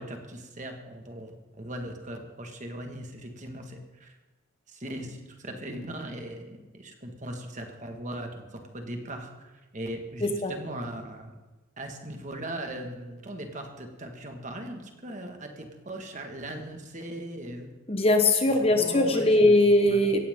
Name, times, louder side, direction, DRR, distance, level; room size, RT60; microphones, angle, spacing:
voice 1, 0.0-4.2 4.7-11.3 11.8-17.7 18.6-20.0, right 1 dB, 35° right, 4 dB, 1.9 m, -39 dB
voice 2, 10.2-10.5 17.9-20.2, left 1 dB, 25° left, 5 dB, 1.2 m, -21 dB
17.5 x 15.0 x 3.8 m, 1.2 s
head